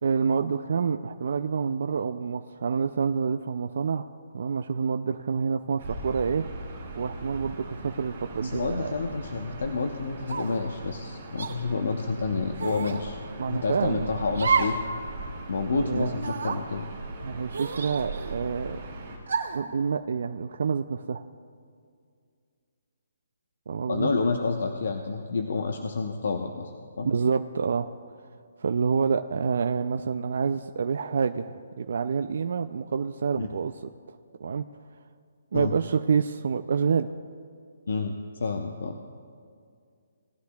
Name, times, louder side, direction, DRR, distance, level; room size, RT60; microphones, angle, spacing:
voice 1, 0.0-6.5 6.9-8.9 12.9-13.0 13.4-14.4 15.7-16.2 17.2-18.8 19.5-21.2 23.7-24.1 27.0-27.9 28.6-33.7 34.1-34.6 35.5-37.1, right 6 dB, 50° right, 7 dB, 0.3 m, -28 dB
Gull seagull / Ocean, 5.8-19.2, right 2 dB, 30° right, 3.4 m, -40 dB
voice 2, 8.4-13.2 13.5-14.8 15.5-16.9 23.9-26.7 27.0-27.1 33.4-33.5 35.5-35.7 37.9-39.0, left 4 dB, 60° left, 4 dB, 0.7 m, -29 dB
sound 1, 10.3-10.7 11.4-11.5 12.6-13.0 14.3-14.8 15.2-15.3 16.1-16.6 17.5-18.4 19.3-19.7, right 5 dB, 90° right, 2.2 m, -29 dB
19.0 x 11.5 x 2.3 m, 2.2 s
hypercardioid pair, 180°, 0 cm